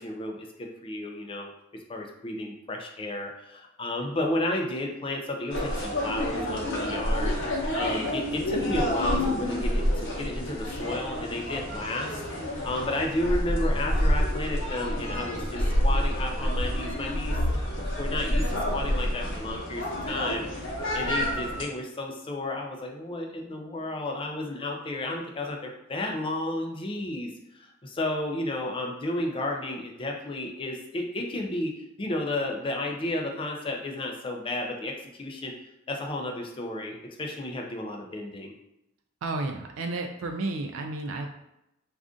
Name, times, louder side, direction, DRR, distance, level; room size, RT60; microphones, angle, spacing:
voice 1, 0.0-1.5 1.9-7.4 7.7-18.4 18.7-27.3 27.5-31.7 32.0-35.5 35.9-38.5, left 1 dB, 25° left, 1 dB, 0.4 m, -32 dB
sound 1, 5.5-21.6, equal, 70° left, 0.9 m, -28 dB
voice 2, 39.2-41.3, right 2 dB, 85° right, 3 dB, 0.3 m, -32 dB
2.5 x 2.4 x 3.6 m, 0.86 s
head